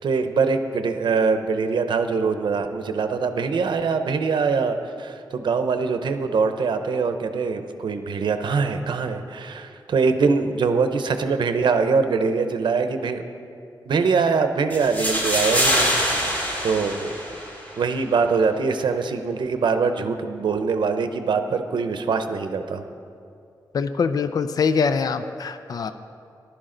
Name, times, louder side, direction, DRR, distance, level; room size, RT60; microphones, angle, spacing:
voice 1, 0.0-13.2 13.9-16.3 16.6-17.1 17.8-22.8, right 5 dB, 80° right, 8 dB, 0.7 m, -23 dB
sound 1, 14.7-17.7, equal, 20° left, 2.1 m, -24 dB
voice 2, 23.7-25.9, left 5 dB, 55° left, 10 dB, 0.4 m, -23 dB
14.5 x 11.5 x 3.8 m, 2.5 s
wide cardioid pair, 170°, 8 cm